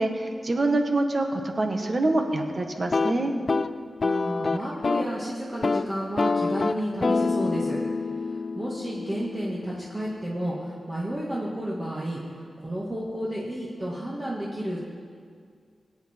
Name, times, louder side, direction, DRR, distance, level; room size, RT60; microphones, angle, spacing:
voice 1, 0.0-3.3, right 2 dB, 40° right, 4 dB, 1.3 m, -25 dB
sound 1, 2.8-5.2 5.5-5.9 6.2-10.0, left 4 dB, 40° left, 0.4 m, -27 dB
voice 2, 4.0-7.8 8.2-14.8, right 1 dB, 20° right, -5 dB, 1.7 m, -32 dB
23.0 x 8.6 x 4.4 m, 2.1 s
wide cardioid pair, 150°, 0 cm